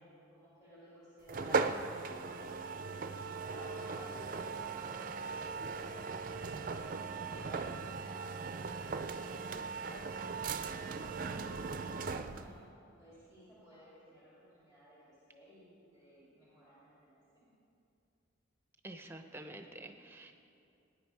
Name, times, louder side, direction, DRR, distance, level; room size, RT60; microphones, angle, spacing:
voice 1, 0.3-2.5 3.2-4.9 5.3-7.0 7.3-12.6 13.0-17.5, equal, 20° left, -10 dB, 3.0 m, -56 dB
sound 1, 1.3-12.6, right 4 dB, 45° right, 0.4 m, -38 dB
voice 2, 18.8-20.3, right 1 dB, 10° right, 6 dB, 0.7 m, -48 dB
18.0 x 9.6 x 4.7 m, 2.6 s
head